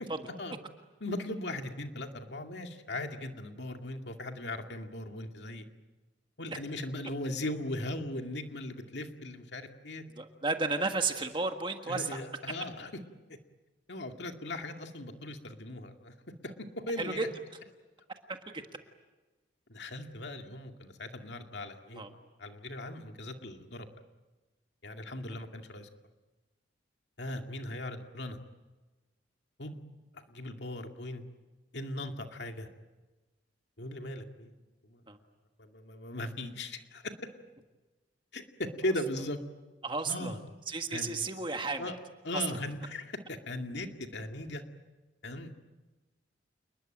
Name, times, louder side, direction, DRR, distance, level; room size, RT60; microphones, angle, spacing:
voice 1, 1.0-5.6 6.4-10.0 11.9-12.9 13.3-13.4 13.9-16.1 16.4-17.3 19.7-22.0 22.4-23.9 24.8-25.9 27.2-28.4 29.6-29.8 30.1-31.2 31.7-32.7 33.8-34.5 34.8-35.0 35.6-37.1 38.3-39.4 40.1-40.4 40.9-41.2 41.8-42.0 42.2-44.6 45.2-45.7, left 1 dB, 65° left, 4 dB, 2.3 m, -38 dB
voice 2, 10.2-12.2 17.0-17.2 18.3-18.6 22.0-22.1 35.1-35.2 39.8-40.3 40.7-41.8 42.3-42.4, right 3 dB, 25° right, 5 dB, 1.6 m, -33 dB
29.0 x 21.0 x 9.1 m, 1.2 s
head